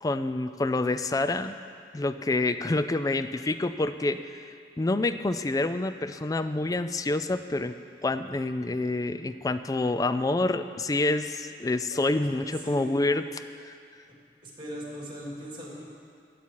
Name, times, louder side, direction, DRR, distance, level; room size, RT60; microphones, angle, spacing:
voice 1, 0.0-1.5 1.9-7.7 8.0-13.7, left 2 dB, 20° left, 11 dB, 0.4 m, -27 dB
voice 2, 11.9-12.9 14.4-15.8, equal, 25° right, -4 dB, 2.7 m, -40 dB
15.5 x 8.5 x 4.6 m, 2.3 s
head